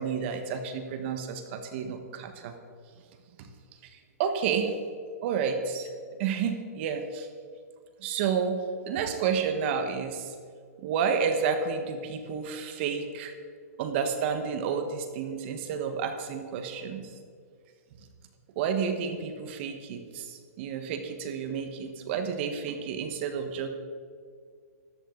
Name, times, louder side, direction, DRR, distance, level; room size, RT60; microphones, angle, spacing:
voice 1, 0.0-2.5 3.4-3.5 3.9-4.8 5.2-5.9 6.2-7.3 8.0-8.6 8.8-10.3 10.8-13.3 13.8-17.1 18.5-23.7, right 6 dB, 45° right, 7 dB, 1.4 m, -30 dB
14.0 x 11.0 x 3.9 m, 2.1 s
hypercardioid pair, 145°, 9 cm